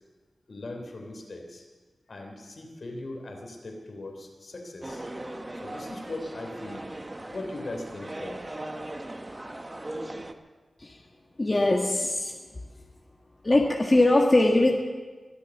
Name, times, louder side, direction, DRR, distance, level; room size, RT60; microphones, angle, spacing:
voice 1, 0.5-1.6 2.1-5.0 5.6-6.9 7.3-8.5, left 2 dB, 65° left, 2 dB, 3.2 m, -39 dB
sound 1, 4.8-10.3, right 1 dB, 25° right, 1.1 m, -38 dB
voice 2, 11.4-12.3 13.4-14.7, left 2 dB, 30° left, 0 dB, 1.6 m, -21 dB
23.0 x 8.3 x 7.1 m, 1.3 s
wide cardioid pair, 70°, 0 cm